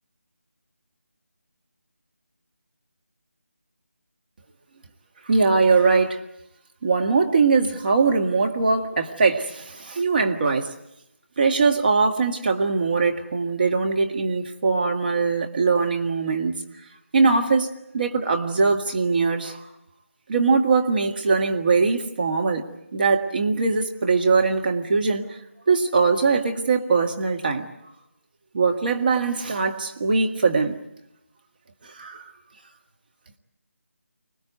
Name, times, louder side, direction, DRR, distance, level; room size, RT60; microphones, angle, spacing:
voice 1, 5.3-6.2 6.8-10.7 11.4-16.6 17.1-17.7 17.9-19.6 20.3-22.6 22.9-25.4 25.7-27.7 28.5-30.7 31.8-32.3, right 4 dB, 35° right, 4 dB, 1.7 m, -21 dB
25.0 x 20.0 x 9.1 m, 0.85 s
figure-of-eight pair, 160°, 8 cm